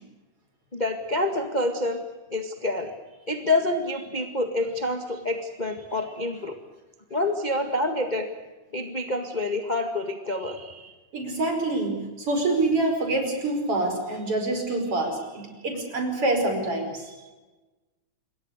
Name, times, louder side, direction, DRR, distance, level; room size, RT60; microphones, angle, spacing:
voice 1, 0.7-2.0 2.3-2.9 3.3-6.5 7.1-8.3 8.7-10.9, left 2 dB, 20° left, 5 dB, 1.5 m, -27 dB
voice 2, 11.1-17.1, right 2 dB, 45° right, 4 dB, 6.0 m, -26 dB
27.5 x 22.5 x 6.6 m, 1.2 s
omnidirectional pair, 3.5 m